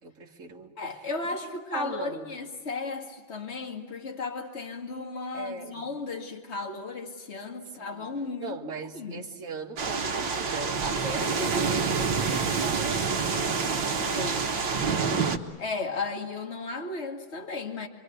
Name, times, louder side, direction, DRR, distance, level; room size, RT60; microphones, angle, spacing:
voice 1, 0.0-1.1 1.4-2.3 5.3-5.8 7.8-8.1 8.4-11.7 12.1-13.3 13.9-14.5 14.9-15.1, right 3 dB, 40° right, 2.2 m, -39 dB
voice 2, 0.8-9.3 11.2-11.6 14.0-14.4 15.6-17.9, left 3 dB, 30° left, 2.3 m, -35 dB
sound 1, 9.8-15.4, right 5 dB, 65° right, 2.1 m, -27 dB
26.5 x 24.5 x 8.0 m
omnidirectional pair, 2.3 m